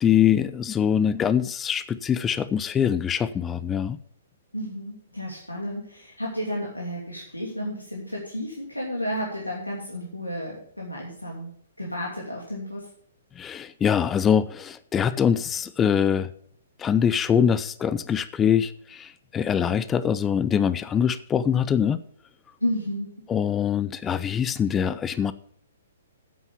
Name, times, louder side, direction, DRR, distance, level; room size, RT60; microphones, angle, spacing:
voice 1, 0.0-4.0 13.4-16.3 16.8-22.0 23.3-25.3, left 8 dB, 15° left, 16 dB, 0.5 m, -23 dB
voice 2, 4.5-11.5 11.8-12.8 22.6-23.1, equal, 90° left, -3 dB, 2.9 m, -32 dB
9.4 x 8.1 x 7.0 m, 0.62 s
figure-of-eight pair, 120°, 0 cm